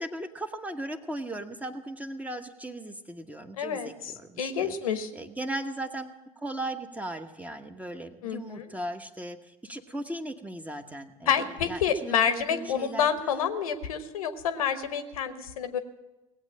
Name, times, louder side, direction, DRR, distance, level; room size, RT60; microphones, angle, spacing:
voice 1, 0.0-4.7 5.1-13.1, right 1 dB, 10° right, 7 dB, 1.1 m, -37 dB
voice 2, 3.6-4.1 4.4-5.1 8.2-8.7 11.3-15.8, left 8 dB, 75° left, 10 dB, 1.0 m, -28 dB
18.0 x 8.1 x 7.5 m, 1.1 s
hypercardioid pair, 70°, 18 cm